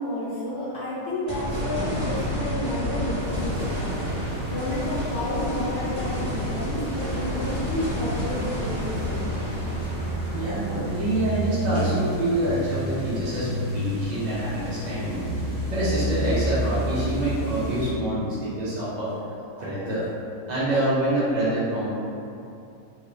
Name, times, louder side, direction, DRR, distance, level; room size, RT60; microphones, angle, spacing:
voice 1, 0.0-9.3, left 1 dB, 90° left, -12 dB, 0.5 m, -31 dB
sound 1, 1.3-13.6 14.1-14.2 17.5-17.6, equal, 30° right, 1.4 m, -30 dB
sound 2, 3.2-17.9, right 1 dB, 10° right, 0.7 m, -31 dB
voice 2, 10.3-15.2 15.7-19.1 19.6-20.1 20.5-21.9, right 1 dB, 70° right, -11 dB, 0.4 m, -26 dB
3.0 x 2.6 x 3.0 m, 2.7 s
omnidirectional pair, 1.9 m